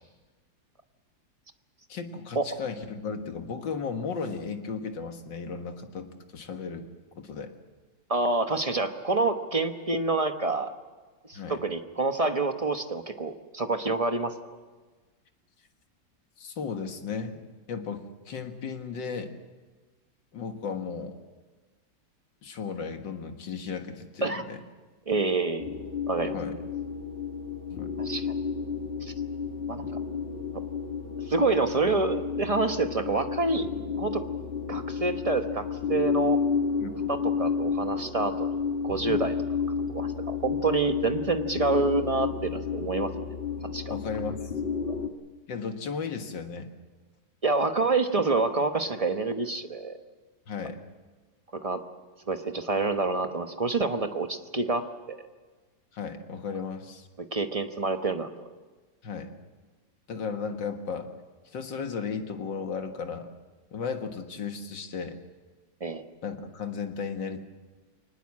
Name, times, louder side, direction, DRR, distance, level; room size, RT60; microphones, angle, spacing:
voice 1, 1.9-6.9 7.2-7.5 11.3-11.6 16.4-19.3 20.3-21.2 22.4-24.6 26.3-26.6 27.7-27.9 36.8-37.0 39.1-39.2 43.9-44.4 45.5-46.7 50.5-50.8 55.9-57.1 59.0-59.3 60.1-61.1 61.5-63.3 63.7-65.2 66.2-67.4, left 5 dB, 70° left, 6 dB, 2.2 m, -35 dB
voice 2, 8.1-10.7 11.3-14.3 24.2-24.4 25.1-25.7 26.1-26.4 28.0-28.3 29.0-29.1 29.7-29.8 31.3-33.7 34.0-34.2 34.7-36.4 37.1-38.6 38.8-39.3 39.9-43.1 43.7-43.9 47.4-50.0 51.6-51.8 52.3-55.2 57.3-58.3 65.8-66.0, right 3 dB, 25° right, 7 dB, 0.8 m, -27 dB
sound 1, 25.6-45.1, left 6 dB, 35° left, 1.4 m, -31 dB
23.5 x 19.5 x 7.5 m, 1.3 s
omnidirectional pair, 2.1 m